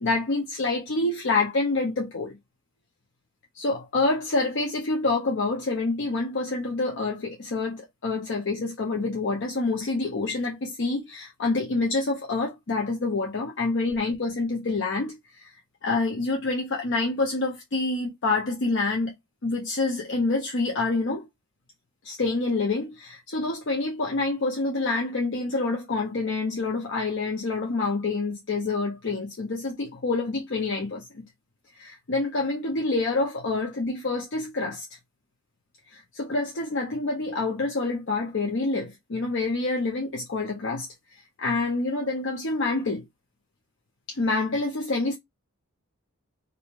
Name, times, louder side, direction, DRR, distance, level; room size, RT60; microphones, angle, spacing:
voice 1, 0.0-2.4 3.5-15.4 15.8-19.1 19.4-21.3 22.0-31.2 31.7-34.9 35.9-40.9 41.4-43.0 44.1-45.2, left 3 dB, 55° left, 0.6 m, -27 dB
2.6 x 2.1 x 3.0 m
head